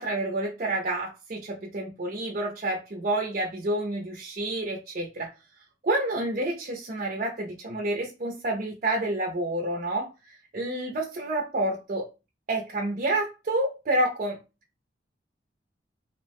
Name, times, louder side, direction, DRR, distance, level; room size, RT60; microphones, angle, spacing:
voice 1, 0.0-5.3 5.8-12.0 12.5-14.4, right 1 dB, 45° right, 0.5 m, -29 dB
2.8 x 2.1 x 3.3 m
head